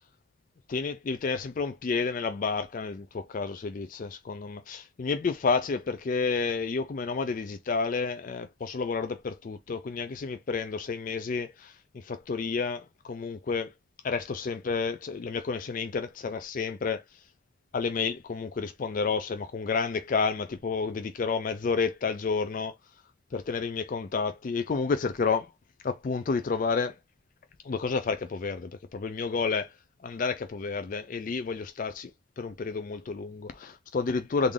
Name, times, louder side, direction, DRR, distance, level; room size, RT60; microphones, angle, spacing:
voice 1, 0.7-13.7 14.0-17.2 17.7-22.7 23.3-25.5 25.8-27.0 27.6-29.7 30.0-32.1 32.4-34.5, left 4 dB, 40° left, 0.3 m, -30 dB
3.6 x 2.5 x 3.2 m
head